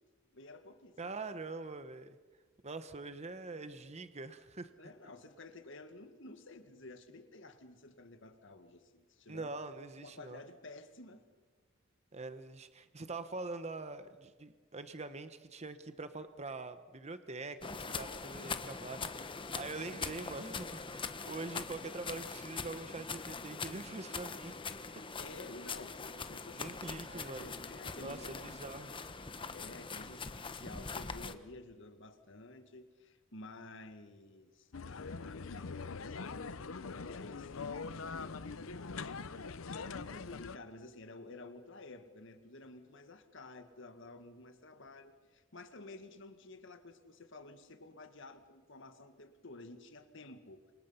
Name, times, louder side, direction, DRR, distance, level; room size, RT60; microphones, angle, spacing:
voice 1, 0.3-1.1 4.8-9.5 10.0-11.2 25.2-28.5 29.5-39.2 39.8-50.6, left 2 dB, 65° left, 8 dB, 1.8 m, -52 dB
voice 2, 1.0-2.2 2.6-4.7 9.3-10.4 12.1-24.6 26.6-27.6 28.0-28.9, right 3 dB, 35° right, 10 dB, 1.0 m, -44 dB
sound 1, 17.6-31.3, left 4 dB, 25° left, 1.1 m, -43 dB
sound 2, 34.7-40.6, left 4 dB, 85° left, 0.8 m, -43 dB
29.0 x 25.5 x 5.7 m, 1.3 s
head